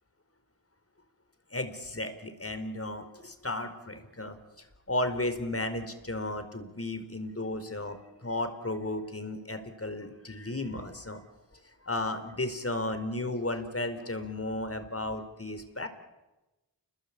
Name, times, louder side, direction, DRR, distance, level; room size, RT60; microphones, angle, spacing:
voice 1, 1.5-4.4 4.9-11.2 11.8-15.9, left 1 dB, 35° left, 9 dB, 4.6 m, -34 dB
29.5 x 21.5 x 8.6 m, 1.0 s
cardioid pair, 45°, 43 cm